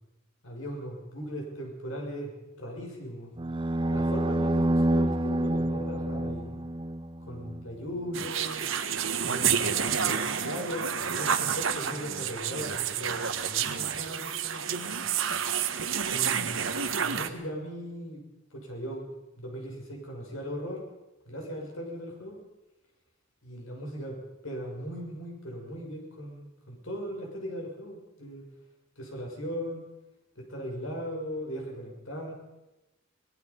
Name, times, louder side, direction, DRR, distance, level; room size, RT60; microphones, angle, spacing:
voice 1, 0.4-3.3 3.9-6.6 7.2-8.7 9.2-15.1 16.1-16.7 17.0-18.2 18.5-19.0 19.3-20.8 21.2-22.4 23.4-24.2 24.4-28.4 29.0-29.8 30.3-32.3, equal, 90° left, 0 dB, 6.5 m, -38 dB
sound 1, 3.4-7.6, right 1 dB, 25° right, 0.6 m, -28 dB
sound 2, 8.1-17.3, right 7 dB, 75° right, 1.4 m, -29 dB
25.0 x 19.5 x 5.4 m, 1.0 s
head